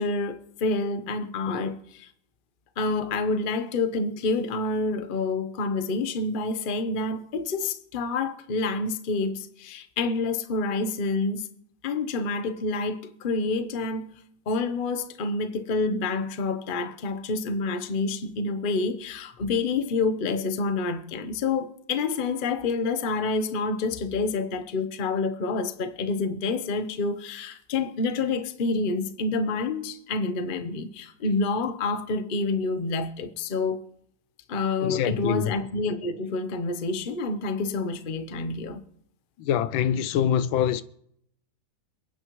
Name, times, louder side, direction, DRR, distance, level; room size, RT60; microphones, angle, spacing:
voice 1, 0.0-2.1 2.8-11.5 11.8-14.1 14.5-33.8 34.5-38.8, left 3 dB, 40° left, 0.7 m, -28 dB
voice 2, 34.8-35.4 39.4-40.8, left 9 dB, 80° left, 1.4 m, -24 dB
28.5 x 9.7 x 3.1 m
omnidirectional pair, 2.1 m